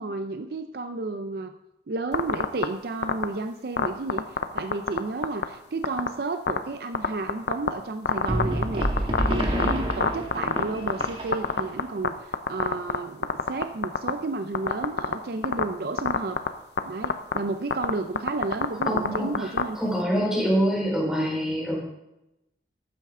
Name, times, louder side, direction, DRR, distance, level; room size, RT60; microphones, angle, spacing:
voice 1, 0.0-1.5 1.9-16.4 16.8-19.8, right 3 dB, 60° right, 8 dB, 0.5 m, -32 dB
sound 1, 2.1-2.6 3.0-3.2 3.8-5.0 5.2-5.4 5.8-6.1 6.5-6.6 6.9-7.7 8.1-11.1 11.3-12.1 12.3-13.0 13.2-14.1 14.5-15.1 15.4-15.6 16.0-16.5 16.8-16.9 17.0-17.4 17.7-17.9 18.2-19.6, left 5 dB, 70° left, 0.7 m, -22 dB
sound 2, 8.3-11.8, equal, 30° right, 1.7 m, -28 dB
voice 2, 18.8-21.8, equal, 5° right, -5 dB, 4.5 m, -25 dB
12.5 x 8.7 x 3.7 m, 0.89 s
head